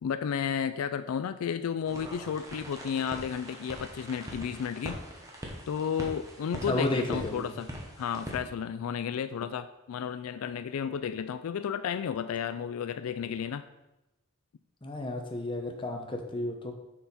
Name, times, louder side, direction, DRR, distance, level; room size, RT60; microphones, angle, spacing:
voice 1, 0.0-5.0 5.7-7.7 8.0-13.7, left 7 dB, 80° left, 11 dB, 0.3 m, -32 dB
sound 1, 1.9-8.4, equal, 15° right, 1.1 m, -42 dB
voice 2, 6.7-7.6 14.8-16.7, left 1 dB, 25° left, 3 dB, 0.8 m, -32 dB
6.6 x 5.7 x 4.1 m, 0.96 s
head